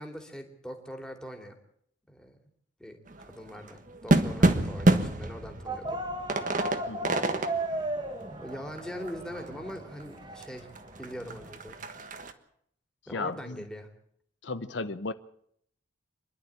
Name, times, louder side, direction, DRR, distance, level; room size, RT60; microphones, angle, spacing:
voice 1, 0.0-1.6 2.1-2.4 2.8-6.0 8.4-10.7 11.0-11.8 13.1-13.9, equal, 5° left, 2.7 m, -42 dB
sound 1, 3.1-10.0 10.4-10.5 10.8-12.3, right 2 dB, 40° right, 1.4 m, -28 dB
sound 2, 5.7-11.5, right 1 dB, 25° right, 1.7 m, -36 dB
voice 2, 6.8-7.2 13.1-13.6 14.4-15.1, left 3 dB, 70° left, 0.8 m, -35 dB
26.5 x 11.5 x 8.6 m
head